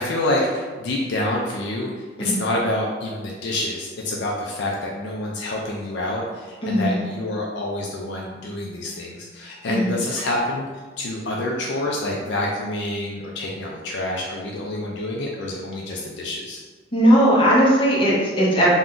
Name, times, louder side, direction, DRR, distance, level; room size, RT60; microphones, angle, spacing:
voice 1, 0.0-10.7 11.0-16.6, left 1 dB, 65° left, -2 dB, 0.4 m, -27 dB
voice 2, 6.6-7.0 9.7-9.9 16.9-18.7, equal, 30° left, -5 dB, 0.7 m, -18 dB
2.5 x 2.2 x 3.6 m, 1.4 s
head